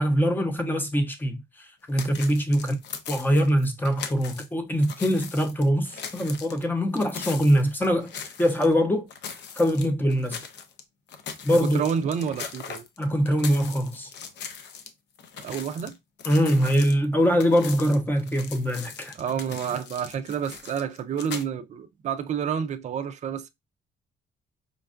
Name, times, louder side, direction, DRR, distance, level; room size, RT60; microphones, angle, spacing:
voice 1, 0.0-2.8 3.1-9.1 9.5-10.4 11.4-11.8 13.0-14.1 16.3-19.1, equal, 10° left, 0.6 m, -23 dB
sound 1, 1.9-4.5 4.8-8.7 9.1-10.8 11.1-14.9 15.2-21.4, left 6 dB, 65° left, 0.6 m, -40 dB
voice 2, 11.6-12.8 15.4-16.0 19.2-23.5, right 7 dB, 40° right, 0.4 m, -29 dB
5.1 x 2.3 x 2.4 m
cardioid pair, 145°, 19 cm